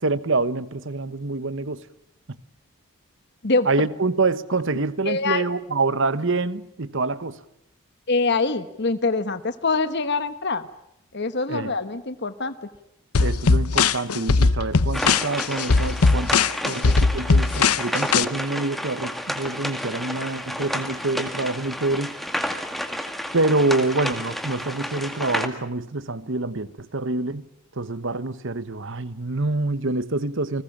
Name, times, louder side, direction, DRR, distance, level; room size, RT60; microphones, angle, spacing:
voice 1, 0.0-1.8 2.3-2.4 3.6-7.4 11.5-11.7 13.2-22.1 23.3-27.5 27.8-30.6, right 3 dB, 60° right, 1.2 m, -26 dB
voice 2, 5.0-5.4 8.1-10.7 11.1-12.5, left 3 dB, 50° left, 1.2 m, -24 dB
sound 1, 13.1-18.2, left 4 dB, 85° left, 0.9 m, -19 dB
sound 2, 14.9-25.5, equal, ahead, 2.0 m, -31 dB
29.5 x 20.5 x 7.4 m
head